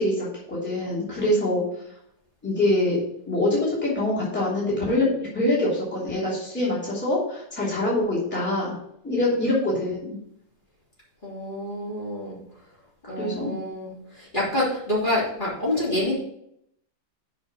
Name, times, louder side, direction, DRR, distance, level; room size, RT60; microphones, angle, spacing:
voice 1, 0.0-1.6 2.4-3.0 3.3-8.7 9.0-10.2 13.2-13.5, left 1 dB, 5° left, -7 dB, 2.9 m, -24 dB
voice 2, 11.2-12.4 13.1-16.1, left 1 dB, 30° left, -6 dB, 3.3 m, -27 dB
7.0 x 5.7 x 6.1 m, 0.73 s
omnidirectional pair, 1.8 m